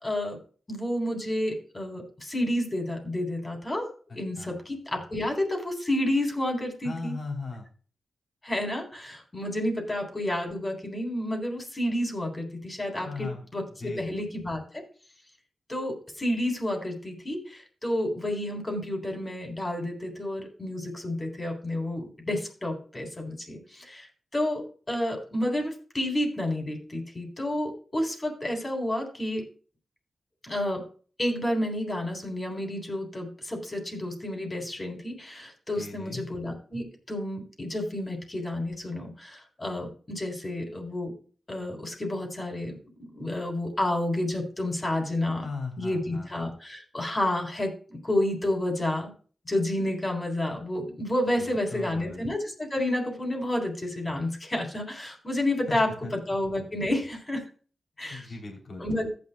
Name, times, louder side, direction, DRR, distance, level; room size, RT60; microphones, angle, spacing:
voice 1, 0.0-0.4 0.7-3.9 4.1-7.2 8.4-14.8 15.7-24.1 24.3-24.6 24.9-29.4 30.4-30.8 31.2-41.1 41.5-42.8 43.1-45.5 45.8-49.1 49.5-57.4 58.0-58.3 58.8-59.1, left 1 dB, 25° left, 2 dB, 3.5 m, -30 dB
voice 2, 6.8-7.7 13.0-13.5 13.8-14.3 35.7-36.2 45.4-46.3 51.4-52.3 55.7-56.1 58.0-58.9, left 3 dB, 55° left, 0 dB, 3.1 m, -38 dB
14.5 x 9.6 x 2.2 m, 0.40 s
cardioid pair, 85°, 0 cm